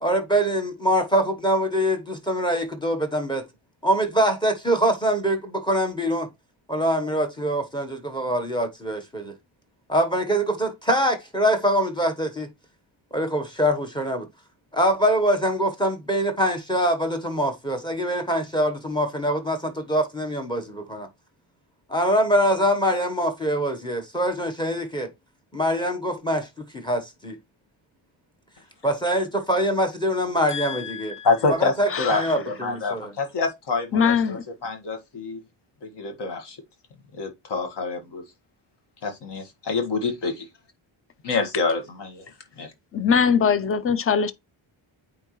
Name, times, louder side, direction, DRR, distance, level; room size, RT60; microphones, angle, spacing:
voice 1, 0.0-3.4 3.8-6.3 6.7-9.4 9.9-12.5 13.1-14.3 14.7-21.1 21.9-25.1 25.5-27.4 28.8-31.2 31.8-33.1, equal, 10° left, 1.1 m, -24 dB
voice 2, 30.5-35.4 35.8-36.6 37.1-38.2 39.0-40.5 41.2-42.7, left 4 dB, 55° left, 1.8 m, -27 dB
voice 3, 33.9-34.4 42.9-44.3, left 6 dB, 30° left, 0.5 m, -21 dB
8.9 x 3.8 x 3.1 m
wide cardioid pair, 175°, 50 cm